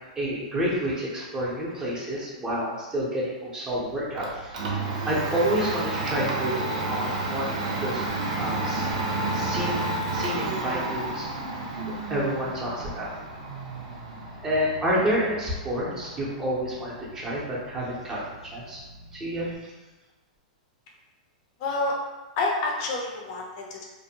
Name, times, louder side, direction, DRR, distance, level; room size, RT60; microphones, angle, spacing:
voice 1, 0.2-8.9 9.3-9.8 10.1-11.3 11.8-13.1 14.4-18.8 19.1-19.5, equal, 15° right, -6 dB, 0.6 m, -29 dB
Domestic sounds home sounds, 3.7-19.5, right 2 dB, 65° right, 0.6 m, -31 dB
voice 2, 21.6-21.9 22.4-23.8, left 2 dB, 45° left, -1 dB, 0.5 m, -28 dB
2.5 x 2.1 x 2.8 m, 1.2 s
hypercardioid pair, 140°, 4 cm